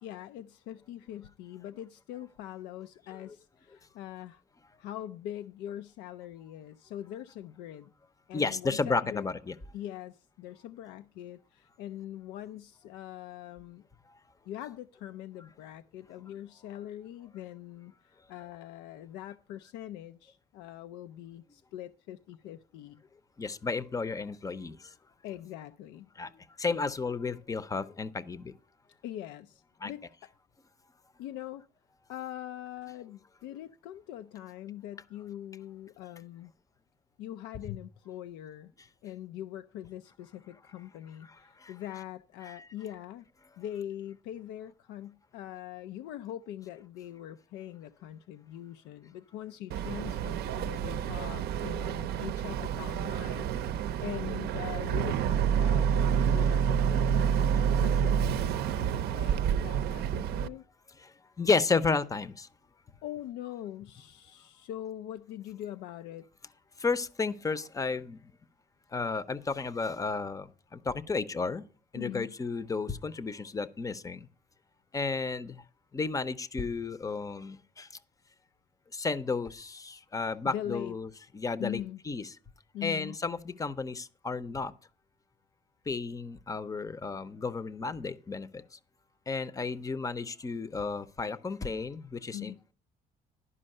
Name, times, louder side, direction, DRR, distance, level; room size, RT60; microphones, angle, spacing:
voice 1, 0.0-4.4 4.8-7.9 8.3-9.3 9.7-13.9 14.5-23.0 25.2-26.1 29.0-30.3 31.2-31.6 32.1-36.5 37.2-38.7 39.0-43.3 43.6-57.4 57.8-60.6 63.0-66.3 71.9-72.3 80.4-81.0 81.6-82.0 82.7-83.2 92.3-92.6, left 12 dB, 90° left, 0.4 m, -42 dB
voice 2, 8.3-9.5 23.4-24.9 26.2-28.5 29.8-29.9 37.6-37.8 41.6-41.7 42.5-42.6 56.9-57.0 61.0-62.5 66.8-68.3 68.9-71.6 71.9-74.3 74.9-75.6 75.9-77.9 78.9-81.1 81.3-82.3 82.8-84.7 85.9-88.8 89.3-92.7, left 4 dB, 20° left, 0.6 m, -33 dB
Boat Water vehicle, 49.7-60.5, right 8 dB, 70° right, 0.6 m, -28 dB
11.0 x 5.2 x 6.5 m
cardioid pair, 110°, 17 cm